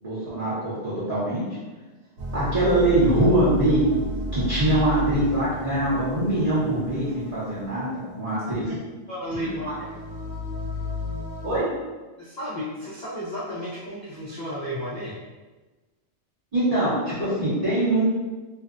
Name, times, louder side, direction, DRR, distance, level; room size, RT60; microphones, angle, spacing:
voice 1, 0.0-1.4 2.3-3.8 4.3-8.7 9.4-9.5 11.4-11.7 16.5-18.0, right 1 dB, 40° right, -12 dB, 0.6 m, -23 dB
sound 1, 2.2-11.6, left 1 dB, 80° right, 1.0 m, -33 dB
voice 2, 9.1-10.0 10.8-10.9 12.2-15.1, equal, 70° left, -8 dB, 0.4 m, -33 dB
2.6 x 2.0 x 2.4 m, 1.2 s
omnidirectional pair, 1.4 m